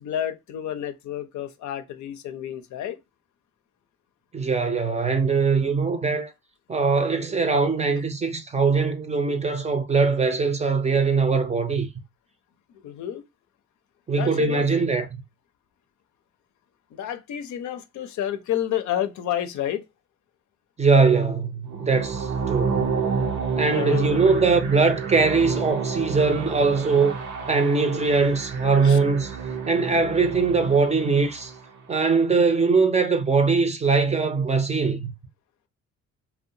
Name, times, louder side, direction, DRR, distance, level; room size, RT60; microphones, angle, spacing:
voice 1, 0.0-3.0 12.8-13.2 14.1-14.6 16.9-19.8 23.7-24.2 28.8-29.0, left 11 dB, 70° left, 0.5 m, -30 dB
voice 2, 4.3-6.3 6.7-11.9 14.1-15.1 20.8-23.0 23.6-27.2 27.5-29.4 29.7-31.5 31.9-35.1, right 4 dB, 20° right, 0.5 m, -21 dB
sound 1, 21.7-31.8, right 5 dB, 80° right, 0.8 m, -30 dB
2.7 x 2.1 x 2.6 m
cardioid pair, 90°, 30 cm